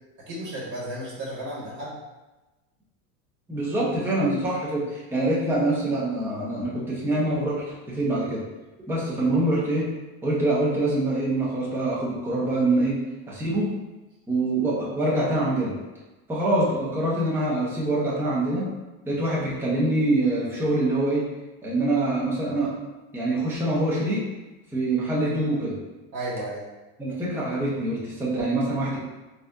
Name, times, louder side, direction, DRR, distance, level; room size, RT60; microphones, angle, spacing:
voice 1, 0.3-1.9 26.1-26.6, right 1 dB, 40° right, -6 dB, 1.4 m, -33 dB
voice 2, 3.5-8.4 8.9-9.9 10.2-12.9 13.3-13.7 14.3-15.7 16.3-18.7 19.1-21.2 21.6-22.8 23.1-24.2 24.7-25.8 27.0-29.0, right 2 dB, 5° right, -7 dB, 0.9 m, -25 dB
4.0 x 2.6 x 3.5 m, 1.1 s
supercardioid pair, 135°, 43 cm